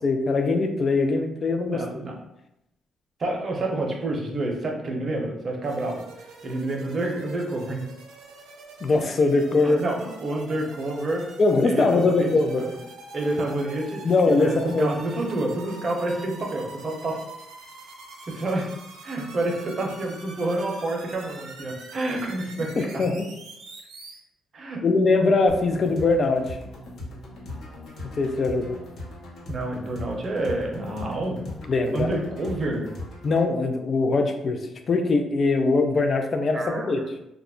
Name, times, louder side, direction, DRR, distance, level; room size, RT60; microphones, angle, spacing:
voice 1, 0.0-1.8 8.8-9.8 11.4-12.7 14.0-14.9 22.8-23.3 24.8-26.6 28.2-28.8 31.7-32.1 33.2-34.6 34.9-37.0, left 3 dB, 45° left, 6 dB, 0.4 m, -22 dB
voice 2, 1.6-2.1 3.2-6.0 6.4-7.8 9.6-11.2 11.6-12.8 13.1-14.1 14.4-17.2 18.3-18.7 19.0-23.0 24.5-24.8 29.5-31.4 31.9-32.9 36.5-36.9, right 2 dB, 45° right, 0 dB, 0.7 m, -28 dB
sound 1, 5.6-24.2, right 3 dB, 90° right, 0.5 m, -45 dB
sound 2, 25.5-33.5, left 1 dB, 70° left, 0.8 m, -39 dB
2.3 x 2.0 x 3.6 m, 0.86 s
cardioid pair, 90°, 0 cm